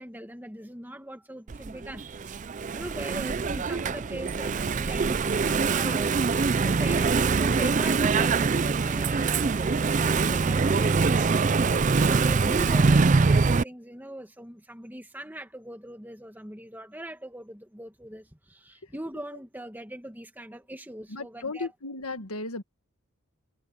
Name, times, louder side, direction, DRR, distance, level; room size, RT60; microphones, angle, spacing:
voice 1, 0.0-2.4 2.7-6.2 6.6-11.7 12.0-21.7, right 1 dB, 10° right, 1.6 m, -41 dB
Engine / Mechanisms, 1.5-13.6, right 4 dB, 35° right, 0.4 m, -24 dB
voice 2, 21.1-22.6, left 3 dB, 85° left, 1.7 m, -35 dB
head